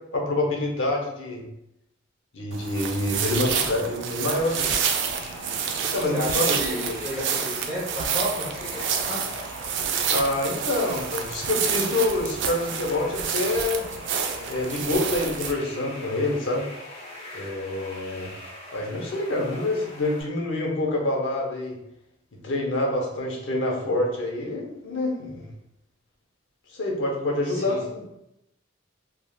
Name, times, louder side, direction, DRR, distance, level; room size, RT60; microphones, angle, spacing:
voice 1, 0.1-1.4 2.3-4.8 5.9-6.6 6.9-7.0 10.1-13.8 14.5-16.7 17.3-18.3 18.7-21.8 22.3-25.5 26.7-28.0, left 2 dB, 75° left, 0 dB, 0.7 m, -26 dB
sound 1, 2.5-15.5, right 7 dB, 65° right, 0.3 m, -29 dB
sound 2, 4.2-20.2, left 1 dB, 30° left, 0.8 m, -42 dB
voice 2, 6.0-9.2 27.4-27.8, equal, 15° right, -9 dB, 0.7 m, -32 dB
3.4 x 2.4 x 2.3 m, 0.84 s
head